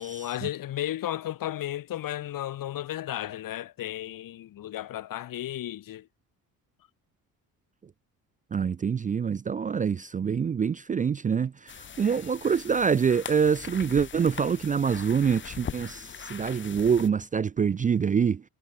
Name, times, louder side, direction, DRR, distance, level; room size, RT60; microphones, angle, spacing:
voice 1, 0.0-6.1, left 13 dB, 65° left, 2.6 m, -34 dB
voice 2, 8.5-18.4, right 6 dB, 25° right, 0.4 m, -25 dB
sound 1, 11.7-17.1, left 7 dB, 35° left, 1.0 m, -41 dB
cardioid pair, 100°, 36 cm